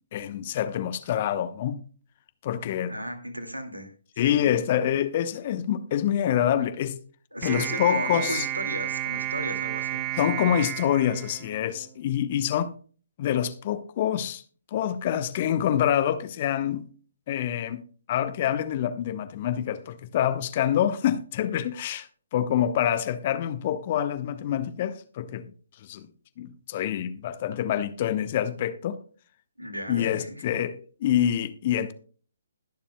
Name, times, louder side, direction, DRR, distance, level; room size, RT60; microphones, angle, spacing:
voice 1, 0.1-1.8 2.4-2.9 4.2-7.0 7.4-8.4 10.2-12.7 13.2-14.4 14.7-16.9 17.3-17.8 18.1-25.5 25.8-26.1 26.4-29.0 29.9-31.9, left 10 dB, 35° left, 0.9 m, -26 dB
voice 2, 2.9-4.4 7.3-10.1 29.6-30.3, equal, 85° right, 2.1 m, -35 dB
sound 1, 7.4-11.9, right 13 dB, 25° right, 0.6 m, -32 dB
21.0 x 7.1 x 2.2 m
figure-of-eight pair, 135°, 0 cm